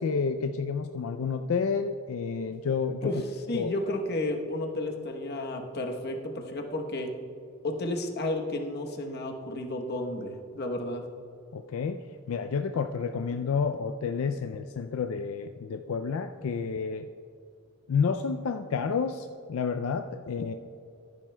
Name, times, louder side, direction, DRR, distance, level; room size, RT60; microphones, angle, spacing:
voice 1, 0.0-3.1 3.5-3.7 11.5-17.1 17.9-20.5, left 5 dB, 75° left, 7 dB, 0.4 m, -30 dB
voice 2, 3.5-7.1 7.6-11.0, left 1 dB, 50° left, 3 dB, 1.0 m, -32 dB
14.5 x 9.6 x 2.2 m, 2.6 s
head